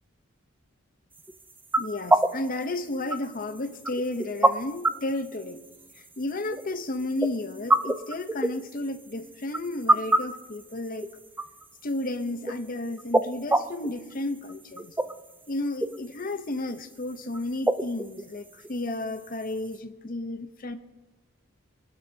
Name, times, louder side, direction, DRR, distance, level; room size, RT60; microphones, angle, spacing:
sound 1, 1.1-19.8, right 1 dB, 10° right, 0.4 m, -29 dB
voice 1, 1.8-5.6 6.2-11.1 11.8-14.9 15.5-20.8, left 2 dB, 40° left, 0.8 m, -32 dB
25.0 x 12.5 x 2.8 m
head